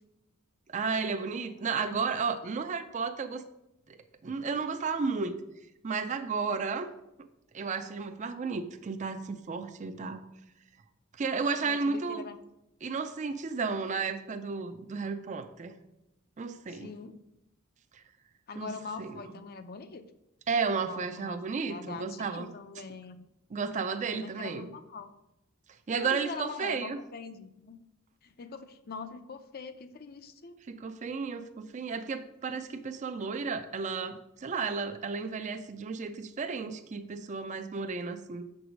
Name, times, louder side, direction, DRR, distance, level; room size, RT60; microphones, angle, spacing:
voice 1, 0.7-3.4 3.9-4.0 4.2-5.4 5.8-6.9 7.2-7.3 7.5-10.3 11.2-12.2 12.8-15.8 16.4-16.9 17.9-18.0 18.6-18.7 19.0-19.2 20.5-22.5 23.5-24.7 25.9-27.0 30.7-38.4, right 5 dB, 35° right, 9 dB, 0.4 m, -33 dB
voice 2, 11.6-12.4 16.7-17.1 18.5-20.0 20.8-21.4 21.7-23.2 24.1-25.1 25.9-27.8 28.2-30.6, left 4 dB, 45° left, 10 dB, 0.5 m, -43 dB
7.0 x 4.7 x 5.1 m, 0.88 s
head